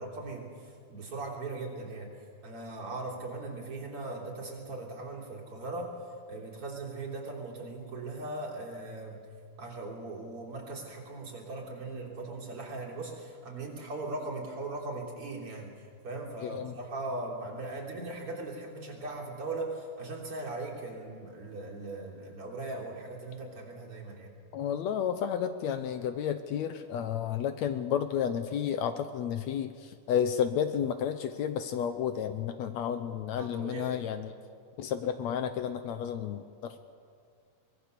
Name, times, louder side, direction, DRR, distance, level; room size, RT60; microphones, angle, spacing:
voice 1, 0.0-2.1 2.4-5.9 6.3-9.2 9.6-15.7 16.0-24.3 33.4-34.0, right 2 dB, 45° right, -3 dB, 4.2 m, -39 dB
voice 2, 16.4-16.8 24.5-34.3 34.8-36.8, left 8 dB, 75° left, 9 dB, 1.9 m, -31 dB
24.0 x 20.0 x 6.8 m, 2.2 s
omnidirectional pair, 3.5 m